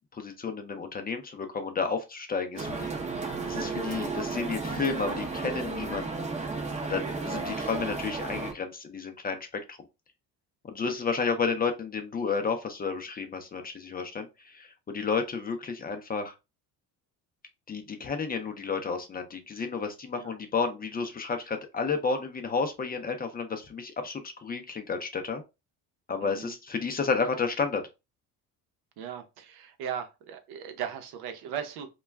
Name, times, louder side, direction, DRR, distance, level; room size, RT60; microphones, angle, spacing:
voice 1, 0.1-2.9 3.4-6.1 6.8-9.8 10.7-16.3 17.7-25.4 26.1-27.8, left 5 dB, 25° left, 0.5 m, -31 dB
sound 1, 2.6-8.5, right 4 dB, 20° right, 0.6 m, -33 dB
voice 2, 26.2-26.5 29.0-31.9, right 8 dB, 80° right, 0.7 m, -38 dB
2.3 x 2.1 x 3.3 m
cardioid pair, 105°, 38 cm